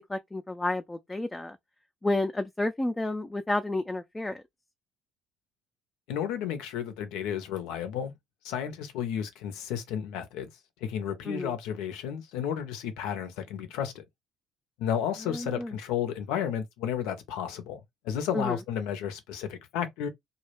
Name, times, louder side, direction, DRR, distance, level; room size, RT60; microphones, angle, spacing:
voice 1, 0.1-1.6 2.0-4.4 11.3-11.5 15.3-15.7 18.3-18.6, left 2 dB, 15° left, 0.4 m, -31 dB
voice 2, 6.1-8.1 8.4-10.5 10.8-14.0 14.8-20.1, left 9 dB, 75° left, 0.5 m, -32 dB
2.2 x 2.0 x 3.1 m
hypercardioid pair, 60°, 0 cm